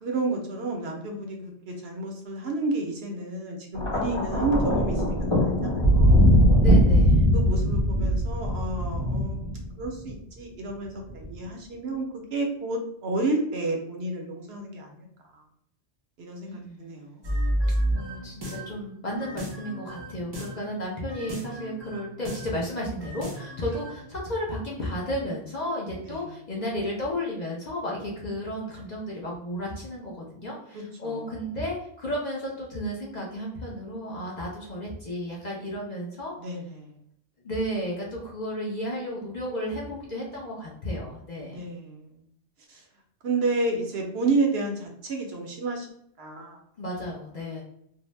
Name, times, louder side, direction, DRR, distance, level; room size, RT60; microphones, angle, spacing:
voice 1, 0.0-6.1 7.3-15.1 15.3-15.4 16.2-17.3 26.1-26.3 30.7-31.3 36.4-36.9 41.4-42.2 42.7-42.8 43.2-45.9 46.2-46.6, right 2 dB, 65° right, 2 dB, 0.8 m, -31 dB
Thunder, 3.7-10.1 11.1-11.3, equal, 30° left, 1.0 m, -21 dB
voice 2, 6.5-7.3 16.5-16.9 17.9-36.3 37.4-41.6 46.8-47.6, equal, 45° left, -4 dB, 0.6 m, -33 dB
sound 1, 17.2-18.8 19.2-20.7 21.1-22.6 23.0-24.0, equal, 30° right, 0.5 m, -31 dB
2.6 x 2.0 x 3.1 m, 0.70 s
omnidirectional pair, 1.2 m